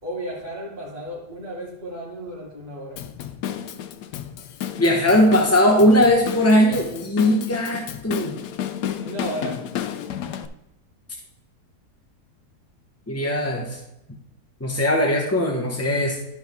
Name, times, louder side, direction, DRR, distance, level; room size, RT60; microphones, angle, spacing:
voice 1, 0.0-3.0 9.0-9.6, right 1 dB, 25° right, -9 dB, 3.1 m, -33 dB
Drum kit / Drum, 3.0-10.5, left 9 dB, 85° left, 1.2 m, -32 dB
voice 2, 4.8-8.4 13.1-13.8 14.6-16.2, left 1 dB, 15° left, -1 dB, 0.6 m, -19 dB
12.0 x 5.6 x 3.5 m, 0.87 s
omnidirectional pair, 1.7 m